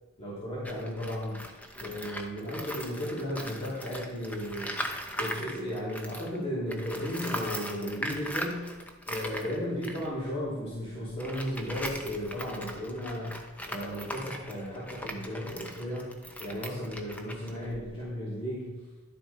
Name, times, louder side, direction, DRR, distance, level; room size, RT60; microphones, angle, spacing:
voice 1, 0.2-1.4 1.7-4.8 5.2-8.7 9.1-16.1 16.4-18.8, equal, 30° left, -10 dB, 3.3 m, -35 dB
Tools, 0.5-6.4 6.7-18.1, equal, 5° left, 0.7 m, -40 dB
11.5 x 6.9 x 4.3 m, 1.3 s
head